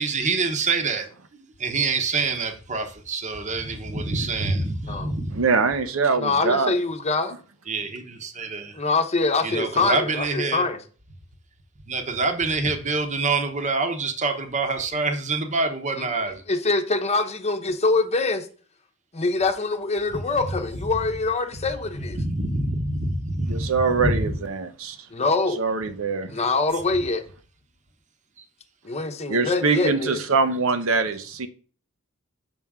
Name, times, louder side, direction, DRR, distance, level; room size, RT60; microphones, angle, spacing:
voice 1, 0.0-5.4 7.7-8.8 9.4-10.7 11.9-16.4 22.2-24.3 28.4-28.5, right 3 dB, 35° right, 1.0 m, -26 dB
voice 2, 5.3-6.8 23.5-25.0 25.6-26.3 29.3-31.5, right 4 dB, 75° right, 0.8 m, -23 dB
voice 3, 6.2-7.3 8.7-10.8 16.5-18.5 19.1-22.2 25.1-25.6 26.3-27.2 28.8-30.2, left 3 dB, 30° left, 0.9 m, -24 dB
7.2 x 5.9 x 3.6 m
head